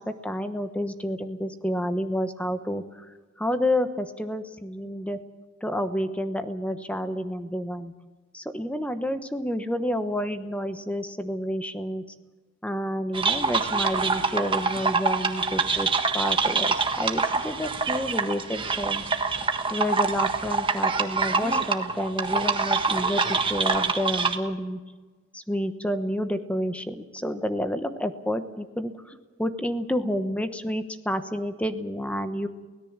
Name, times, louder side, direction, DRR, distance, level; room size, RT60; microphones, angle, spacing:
voice 1, 0.0-3.0 3.4-5.2 5.6-7.9 8.3-12.0 12.6-15.9 16.1-19.0 19.7-24.8 25.3-32.5, equal, 5° left, 9 dB, 1.1 m, -29 dB
sound 1, 13.1-24.4, right 4 dB, 25° right, 1.5 m, -25 dB
24.0 x 17.5 x 7.4 m, 1.3 s
head